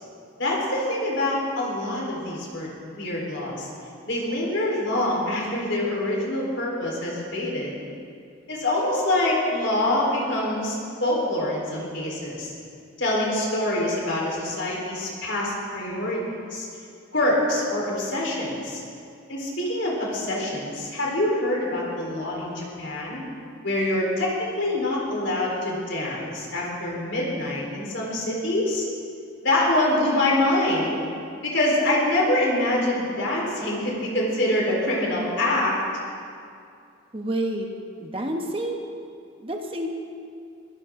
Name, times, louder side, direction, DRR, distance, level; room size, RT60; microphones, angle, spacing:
voice 1, 0.4-2.7 3.0-3.7 4.1-7.7 8.5-12.5 13.0-16.2 16.5-16.7 17.1-18.8 19.3-23.2 23.6-28.9 29.4-31.0 31.4-35.8, left 1 dB, 60° left, -3 dB, 4.1 m, -25 dB
voice 2, 37.1-37.7 38.0-38.8 39.4-39.9, right 1 dB, 25° right, 2 dB, 1.2 m, -28 dB
22.0 x 15.0 x 3.8 m, 2.4 s
head